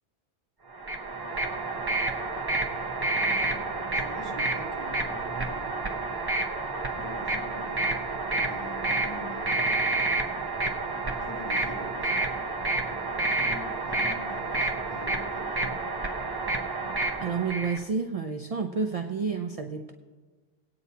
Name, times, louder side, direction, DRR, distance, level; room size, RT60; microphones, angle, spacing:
sound 1, 0.7-17.8, right 2 dB, 25° right, 0.7 m, -29 dB
voice 1, 3.2-5.9 7.0-8.0 8.3-9.8 11.2-12.4 12.8-15.8, left 1 dB, 20° left, -6 dB, 2.8 m, -44 dB
voice 2, 17.2-19.9, right 5 dB, 55° right, 4 dB, 0.4 m, -30 dB
21.5 x 9.0 x 2.8 m, 1.4 s
omnidirectional pair, 1.2 m